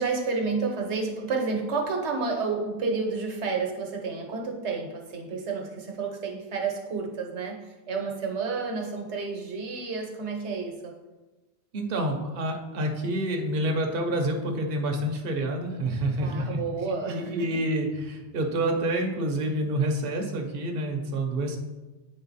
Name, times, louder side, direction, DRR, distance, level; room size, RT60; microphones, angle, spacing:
voice 1, 0.0-10.9 16.2-17.5, right 4 dB, 80° right, 2 dB, 1.3 m, -30 dB
voice 2, 11.7-16.6 16.9-21.6, right 1 dB, 55° right, 2 dB, 1.0 m, -28 dB
9.1 x 3.8 x 4.1 m, 1.2 s
omnidirectional pair, 1.2 m